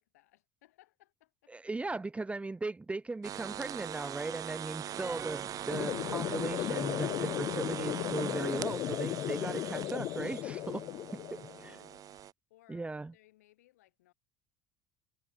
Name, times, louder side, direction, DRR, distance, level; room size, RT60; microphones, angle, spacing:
voice 1, 0.0-1.5 11.3-14.1, left 16 dB, 85° left, 7.9 m, -65 dB
voice 2, 1.5-10.8 11.3-11.4 12.7-13.1, right 3 dB, 15° right, 0.7 m, -38 dB
sound 1, 3.2-12.3, right 10 dB, 45° right, 0.8 m, -41 dB
sound 2, 5.0-6.7, right 5 dB, 30° right, 5.6 m, -48 dB
sound 3, 5.7-11.7, left 14 dB, 55° left, 0.3 m, -35 dB
hypercardioid pair, 75°, 8 cm